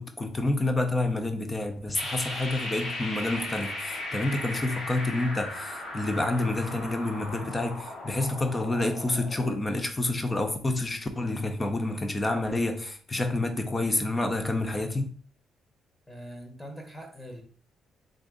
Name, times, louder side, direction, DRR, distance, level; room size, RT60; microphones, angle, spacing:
voice 1, 0.0-15.1, left 2 dB, 20° left, 0.7 m, -28 dB
sound 1, 1.9-9.5, left 1 dB, 80° left, 1.6 m, -37 dB
voice 2, 16.1-17.4, equal, 5° left, 1.1 m, -42 dB
3.7 x 2.5 x 3.7 m
cardioid pair, 90°, 0 cm